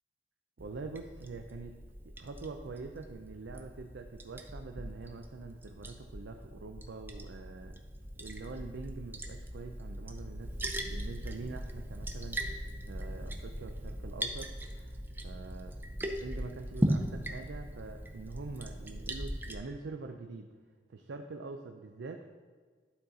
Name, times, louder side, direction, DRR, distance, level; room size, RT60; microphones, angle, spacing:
Liquid, 0.6-19.5, right 1 dB, 10° right, 0.5 m, -39 dB
voice 1, 0.6-1.8 2.0-7.8 8.2-10.6 10.8-15.7 16.2-20.5 20.9-22.3, right 3 dB, 90° right, 5 dB, 0.5 m, -45 dB
12.0 x 4.0 x 3.9 m, 1.5 s
head